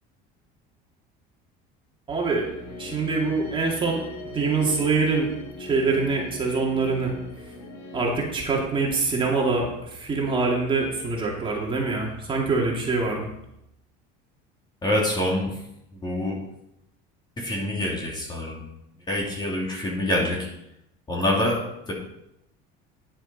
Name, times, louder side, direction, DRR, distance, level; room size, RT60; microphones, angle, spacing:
voice 1, 2.1-2.5 2.8-4.0 4.3-5.3 5.6-7.1 7.9-13.3, right 4 dB, 25° right, -2 dB, 2.4 m, -24 dB
sound 1, 2.4-8.1, left 2 dB, 60° left, 3.1 m, -40 dB
voice 2, 14.8-15.6 15.9-16.4 17.4-18.7 19.1-20.5 21.1-21.9, left 1 dB, 20° left, -2 dB, 3.0 m, -26 dB
10.5 x 7.3 x 5.3 m, 0.82 s
cardioid pair, 135°, 21 cm